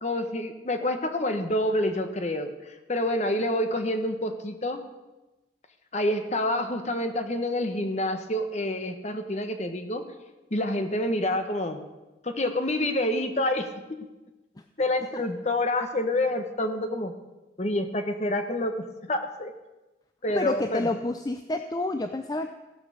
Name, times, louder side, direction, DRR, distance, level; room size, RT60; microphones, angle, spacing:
voice 1, 0.0-4.8 5.9-10.0 10.5-11.8 12.2-13.7 14.8-17.1 17.6-19.5 20.2-20.9, left 1 dB, 40° left, 7 dB, 1.1 m, -27 dB
voice 2, 20.3-22.5, left 2 dB, 20° left, 7 dB, 0.4 m, -29 dB
16.5 x 5.9 x 6.8 m, 1.1 s
head